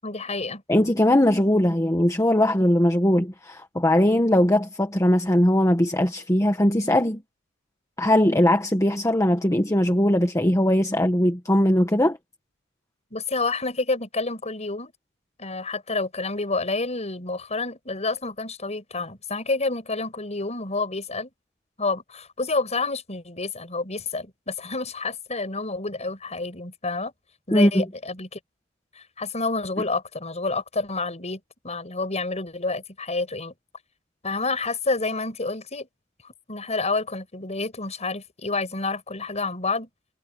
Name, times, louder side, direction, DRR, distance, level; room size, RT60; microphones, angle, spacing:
voice 1, 0.0-0.6 13.1-14.9 15.4-21.3 21.8-27.1 27.5-28.4 29.0-33.5 34.2-35.9 36.2-39.9, left 3 dB, 35° left, 6.4 m, -29 dB
voice 2, 0.7-7.2 8.0-12.2 27.5-27.8, left 1 dB, 15° left, 1.3 m, -20 dB
head